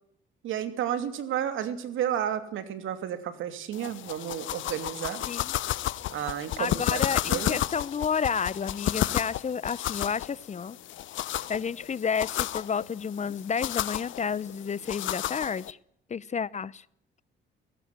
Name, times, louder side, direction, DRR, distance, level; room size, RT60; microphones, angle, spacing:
voice 1, 0.4-5.2 6.1-7.0 7.3-7.6, right 10 dB, 80° right, 11 dB, 2.8 m, -32 dB
sound 1, 3.7-15.7, left 13 dB, 75° left, 0.8 m, -32 dB
voice 2, 6.6-10.8 11.5-15.8 16.1-16.8, left 6 dB, 35° left, 22 dB, 0.8 m, -31 dB
19.0 x 17.5 x 9.6 m, 0.69 s
cardioid pair, 90°, 20 cm